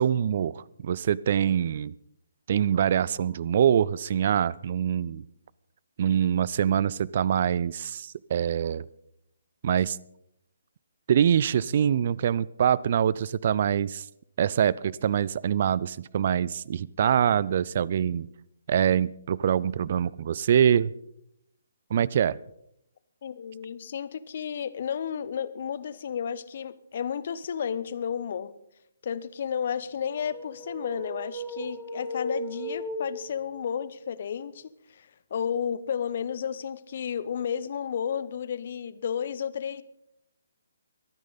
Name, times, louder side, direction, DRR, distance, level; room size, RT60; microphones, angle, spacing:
voice 1, 0.0-1.9 2.5-5.2 6.0-8.8 9.6-10.0 11.1-14.0 14.4-18.3 18.7-20.9 21.9-22.4, right 9 dB, 45° right, 23 dB, 0.4 m, -24 dB
voice 2, 23.2-28.5 29.0-39.8, left 8 dB, 50° left, 16 dB, 0.8 m, -32 dB
sound 1, 30.0-33.6, left 1 dB, 5° left, 2.6 m, -36 dB
24.0 x 9.5 x 4.0 m, 0.77 s
figure-of-eight pair, 140°, 0 cm